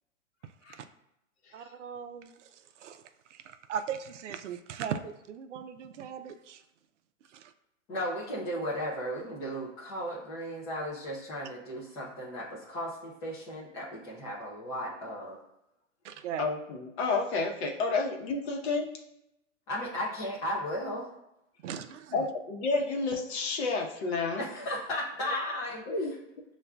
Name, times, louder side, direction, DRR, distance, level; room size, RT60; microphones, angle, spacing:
voice 1, 1.5-2.3 2.8-3.0 3.3-3.4 3.7-6.6 7.3-7.5 16.0-16.5 21.6-22.2, right 8 dB, 65° right, 8 dB, 0.5 m, -38 dB
voice 2, 7.9-15.4 19.7-21.1 24.4-25.8, equal, 10° left, -8 dB, 0.3 m, -35 dB
voice 3, 16.4-18.9 22.1-24.4 25.9-26.1, left 3 dB, 55° left, 2 dB, 0.9 m, -30 dB
6.7 x 2.4 x 2.2 m, 0.85 s
hypercardioid pair, 125°, 39 cm